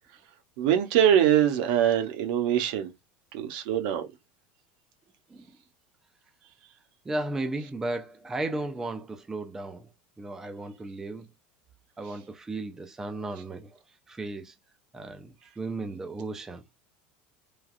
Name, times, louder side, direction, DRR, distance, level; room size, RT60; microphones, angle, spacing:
voice 1, 0.6-2.9 3.3-4.0, right 10 dB, 70° right, 0.9 m, -23 dB
voice 2, 7.0-9.9 10.2-11.3 12.0-14.5 14.9-16.8, right 2 dB, 10° right, 0.4 m, -35 dB
3.3 x 2.4 x 2.4 m
supercardioid pair, 160°, 5 cm